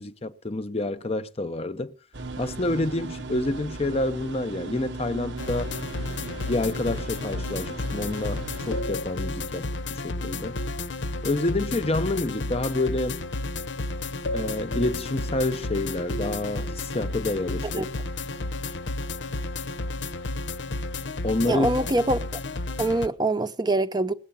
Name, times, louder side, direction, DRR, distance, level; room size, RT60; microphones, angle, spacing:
voice 1, 0.0-1.9 2.4-5.8 6.5-10.6 11.2-13.2 14.3-17.9 21.2-21.7, left 2 dB, 35° left, 0.8 m, -28 dB
sound 1, 2.1-8.8, right 2 dB, 75° right, 1.0 m, -37 dB
sound 2, 5.4-23.1, left 2 dB, 85° left, 0.8 m, -32 dB
voice 2, 21.5-22.4 22.8-24.1, right 2 dB, 25° right, 0.8 m, -24 dB
19.5 x 8.0 x 7.2 m
head